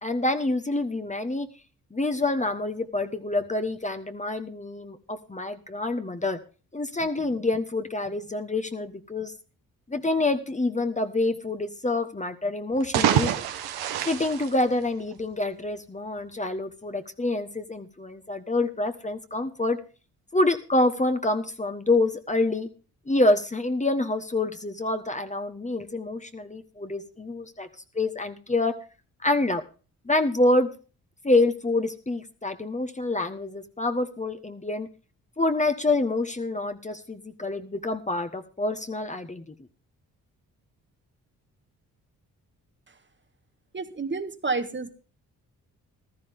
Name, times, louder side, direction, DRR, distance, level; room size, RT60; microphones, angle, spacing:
voice 1, 0.0-1.5 1.9-6.4 6.7-9.3 9.9-13.3 14.0-19.8 20.3-22.7 23.1-27.7 27.9-28.8 29.2-29.6 30.0-30.7 31.2-34.9 35.4-39.4, left 2 dB, 20° left, 8 dB, 1.3 m, -27 dB
sound 1, 12.7-15.3, right 10 dB, 80° right, 1.3 m, -26 dB
voice 2, 43.7-44.9, right 4 dB, 30° right, 9 dB, 1.5 m, -30 dB
14.5 x 13.0 x 3.6 m, 0.36 s
supercardioid pair, 50°, 37 cm